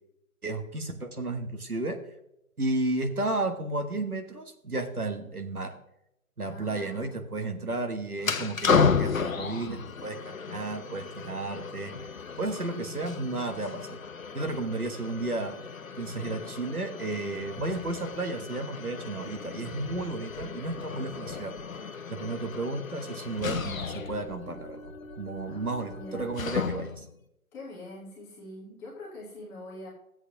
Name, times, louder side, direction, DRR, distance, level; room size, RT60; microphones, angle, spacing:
voice 1, 0.4-2.0 2.6-5.8 6.4-10.2 10.5-11.9 12.4-14.0 14.3-15.6 16.0-21.6 22.1-24.9 25.2-27.0, right 2 dB, 85° right, 5 dB, 1.6 m, -33 dB
voice 2, 6.4-7.2 25.5-26.3 27.5-29.9, left 1 dB, 5° left, -6 dB, 1.0 m, -44 dB
sound 1, 8.2-27.1, left 5 dB, 65° left, 0.9 m, -33 dB
13.5 x 8.0 x 2.8 m, 0.82 s
figure-of-eight pair, 145°, 43 cm